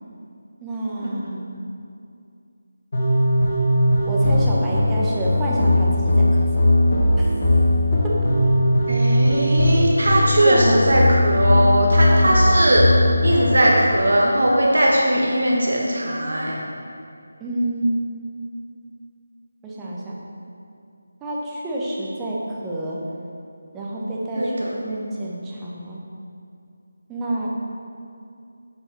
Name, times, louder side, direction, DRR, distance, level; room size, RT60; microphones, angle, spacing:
voice 1, 0.6-1.5 4.0-6.3 7.2-7.3 10.4-10.8 17.4-18.1 19.6-20.2 21.2-22.4 22.6-23.0 23.7-26.0 27.1-27.5, right 1 dB, 10° right, -5 dB, 0.9 m, -27 dB
sound 1, 2.9-13.6, left 1 dB, 50° left, 1.6 m, -18 dB
voice 2, 8.9-12.8 13.2-16.6 24.4-24.7, right 1 dB, 70° right, -3 dB, 1.2 m, -19 dB
7.9 x 4.6 x 4.5 m, 2.5 s
figure-of-eight pair, 160°, 0 cm